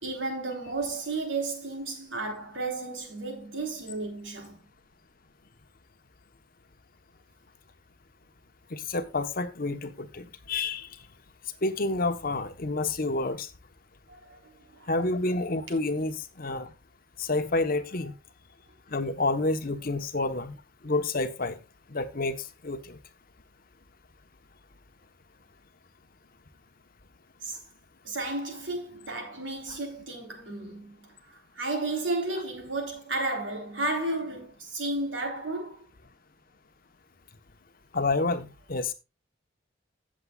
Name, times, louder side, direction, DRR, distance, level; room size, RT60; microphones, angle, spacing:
voice 1, 0.0-4.6 14.1-14.9 27.4-27.6 28.0-35.9, right 2 dB, 85° right, 3.7 m, -33 dB
voice 2, 8.7-10.9 11.6-13.5 14.9-16.7 17.2-18.1 18.9-20.6 20.8-21.6 21.9-23.0 37.9-38.9, left 2 dB, 50° left, 1.1 m, -29 dB
16.5 x 7.4 x 2.4 m
head